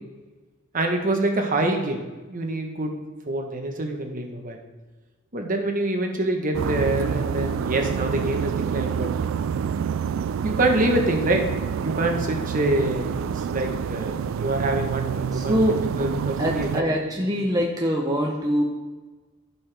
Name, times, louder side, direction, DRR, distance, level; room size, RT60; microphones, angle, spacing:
voice 1, 0.7-2.0 2.3-3.0 3.3-4.6 5.3-9.1 10.4-11.4 11.8-15.6 16.0-16.9 17.4-17.5, right 2 dB, 40° right, 3 dB, 1.2 m, -25 dB
sound 1, 6.5-16.8, right 7 dB, 70° right, 0.3 m, -27 dB
voice 2, 15.3-15.8 16.4-18.6, equal, 20° right, -1 dB, 0.9 m, -23 dB
15.5 x 5.8 x 3.5 m, 1.3 s
head